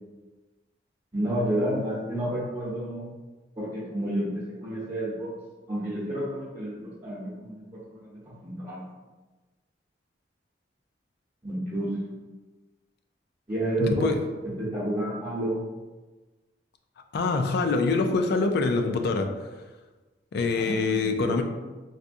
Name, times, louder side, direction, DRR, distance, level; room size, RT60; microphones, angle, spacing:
voice 1, 1.1-3.1 3.6-5.3 5.7-8.8 11.4-11.9 13.5-14.1 14.4-15.6 20.5-21.4, right 1 dB, 25° right, -12 dB, 1.0 m, -30 dB
voice 2, 13.8-14.2 17.1-19.3 20.3-21.4, left 3 dB, 60° left, 6 dB, 0.3 m, -25 dB
4.0 x 2.3 x 2.5 m, 1.2 s
head